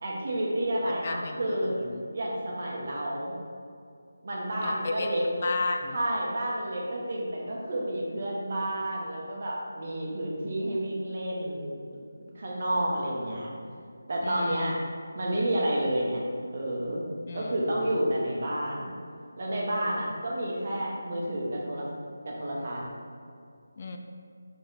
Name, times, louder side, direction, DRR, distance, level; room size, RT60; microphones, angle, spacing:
voice 1, 0.0-1.7 2.1-3.3 4.2-5.3 5.9-11.7 12.3-13.5 14.1-14.8 15.1-16.2 16.5-17.0 17.3-18.9 19.4-21.9 22.2-22.8, right 1 dB, 50° right, -3 dB, 1.4 m, -30 dB
voice 2, 1.0-2.0 4.6-5.1 5.4-6.0 14.2-14.7 17.3-17.8 23.8-24.0, left 3 dB, 40° left, 4 dB, 0.4 m, -34 dB
5.2 x 4.3 x 4.2 m, 2.3 s
figure-of-eight pair, 160°, 0 cm